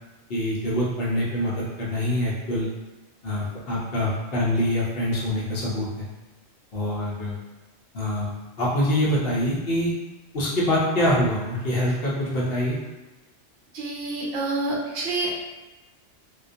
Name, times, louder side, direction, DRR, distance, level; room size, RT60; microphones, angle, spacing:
voice 1, 0.3-2.7 3.2-6.1 6.7-7.4 7.9-8.3 8.6-9.9 10.3-12.8, left 1 dB, 60° left, -6 dB, 0.8 m, -25 dB
voice 2, 13.7-15.3, right 2 dB, 70° right, -3 dB, 0.8 m, -27 dB
2.2 x 2.2 x 2.6 m, 1.1 s
omnidirectional pair, 1.2 m